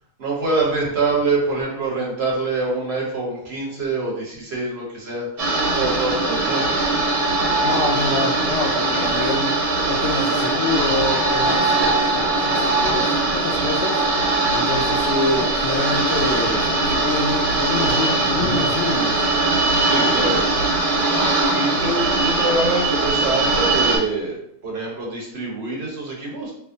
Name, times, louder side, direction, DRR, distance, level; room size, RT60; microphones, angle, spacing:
voice 1, 0.2-5.3 5.7-6.9 18.3-18.6 19.8-20.4 21.5-24.4 24.6-26.5, right 3 dB, 50° right, -3 dB, 1.2 m, -25 dB
sound 1, 5.4-24.0, right 2 dB, 80° right, 1.5 m, -20 dB
voice 2, 7.6-9.6 9.9-19.3, left 2 dB, 70° left, -3 dB, 0.6 m, -27 dB
3.4 x 2.1 x 3.8 m, 0.72 s
omnidirectional pair, 1.6 m